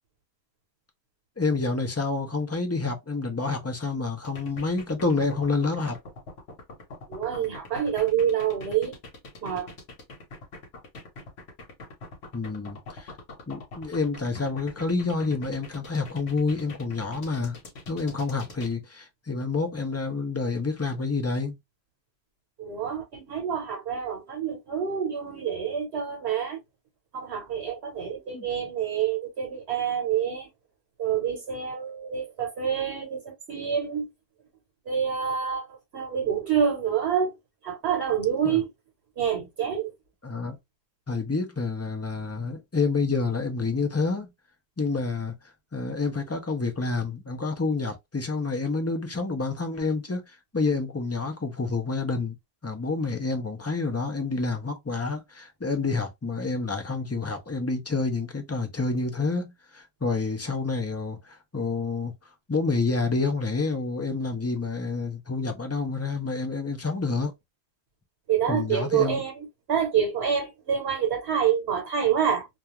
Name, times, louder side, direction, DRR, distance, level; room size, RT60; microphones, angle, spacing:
voice 1, 1.4-6.0 12.3-13.1 13.5-17.6 17.9-21.6 28.3-28.5 38.4-38.6 40.2-40.6 41.1-44.3 44.8-45.4 45.7-52.3 52.6-62.1 62.5-67.3 68.5-69.2, left 3 dB, 20° left, 0.4 m, -28 dB
sound 1, 4.2-18.7, left 2 dB, 90° left, 1.1 m, -43 dB
voice 2, 7.1-8.9 9.4-9.7 22.6-26.6 27.1-30.5 31.0-34.1 34.9-37.3 37.6-38.7 39.2-39.9 68.3-72.5, right 8 dB, 80° right, 1.0 m, -27 dB
2.3 x 2.3 x 2.9 m
omnidirectional pair, 1.0 m